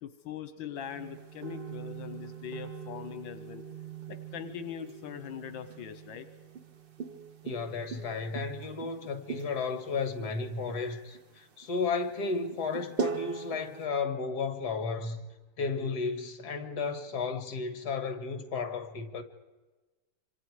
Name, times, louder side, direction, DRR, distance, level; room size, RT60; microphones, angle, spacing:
voice 1, 0.0-3.7 4.1-6.3 15.8-16.0, left 8 dB, 85° left, 1.6 m, -41 dB
sound 1, 0.7-13.9, right 6 dB, 45° right, 0.7 m, -41 dB
voice 2, 7.4-15.2 15.6-19.2, left 4 dB, 55° left, 2.1 m, -33 dB
27.0 x 25.0 x 4.8 m
omnidirectional pair, 2.1 m